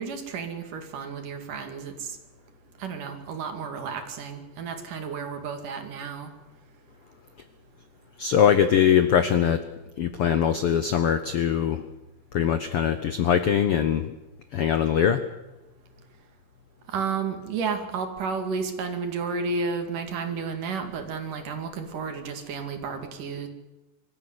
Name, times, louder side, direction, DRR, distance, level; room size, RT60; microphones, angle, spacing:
voice 1, 0.0-2.2 2.8-6.3 16.9-23.5, right 5 dB, 70° right, 6 dB, 3.9 m, -32 dB
voice 2, 8.2-9.6 10.0-11.8 12.3-14.2 14.5-15.2, left 8 dB, 80° left, 10 dB, 1.3 m, -22 dB
24.0 x 14.5 x 9.6 m, 1.1 s
omnidirectional pair, 4.0 m